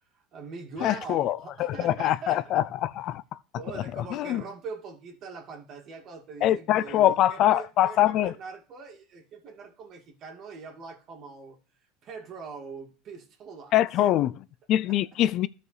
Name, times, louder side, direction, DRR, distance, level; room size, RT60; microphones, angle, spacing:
voice 1, 0.1-2.6 3.5-11.6 12.0-13.8 14.8-15.0, right 5 dB, 50° right, 2.3 m, -42 dB
voice 2, 0.8-3.2 3.7-4.4 6.4-8.3 13.7-15.5, left 13 dB, 55° left, 0.4 m, -24 dB
13.5 x 4.8 x 3.3 m
supercardioid pair, 100°, 0 cm